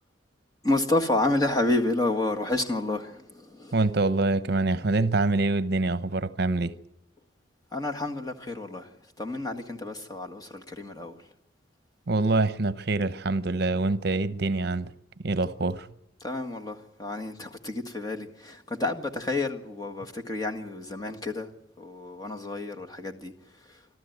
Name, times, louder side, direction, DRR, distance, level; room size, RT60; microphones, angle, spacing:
voice 1, 0.6-3.8 7.7-11.3 16.2-21.5 21.8-23.3 23.6-23.8, left 2 dB, 20° left, 1.8 m, -30 dB
voice 2, 3.7-6.7 12.1-14.9 15.2-15.9, right 2 dB, 60° right, 0.8 m, -25 dB
25.5 x 14.0 x 9.4 m
head